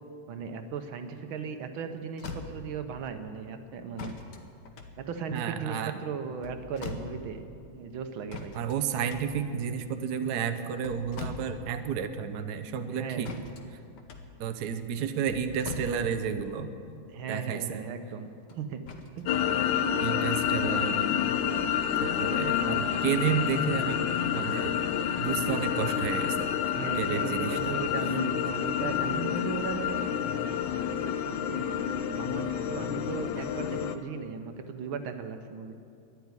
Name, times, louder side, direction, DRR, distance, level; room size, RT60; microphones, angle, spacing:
voice 1, 0.3-4.2 5.0-7.4 7.7-8.6 12.9-13.3 17.1-18.8 19.2-19.3 26.7-30.0 30.9-31.0 31.3-35.8, right 6 dB, 80° right, 8 dB, 1.7 m, -37 dB
sound 1, 1.7-1.8 2.1-2.9 4.0-5.6 6.3-7.5 8.3-9.7 10.6-11.9 12.1-12.2 13.2-16.5 18.5-19.3 19.9-20.0, left 4 dB, 60° left, 1.6 m, -42 dB
voice 2, 5.3-5.9 8.5-13.3 14.4-16.7 17.3-17.8 20.0-21.1 22.0-24.0 24.3-24.8 25.2-27.8, right 7 dB, 60° right, 7 dB, 1.2 m, -31 dB
sound 2, 19.3-34.0, left 9 dB, 80° left, 1.5 m, -29 dB
13.0 x 10.5 x 9.6 m, 2.5 s
omnidirectional pair, 2.2 m